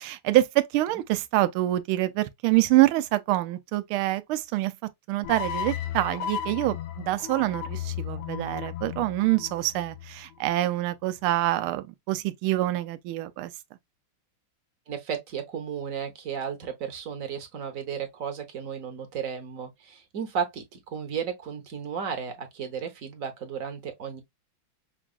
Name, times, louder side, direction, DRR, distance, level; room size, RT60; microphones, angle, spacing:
voice 1, 0.0-4.7 5.1-13.5, right 16 dB, 85° right, 1.4 m, -26 dB
sound 1, 5.2-10.5, left 10 dB, 85° left, 1.6 m, -35 dB
voice 2, 14.9-24.2, right 7 dB, 50° right, 1.1 m, -34 dB
5.9 x 2.3 x 2.4 m
omnidirectional pair, 2.3 m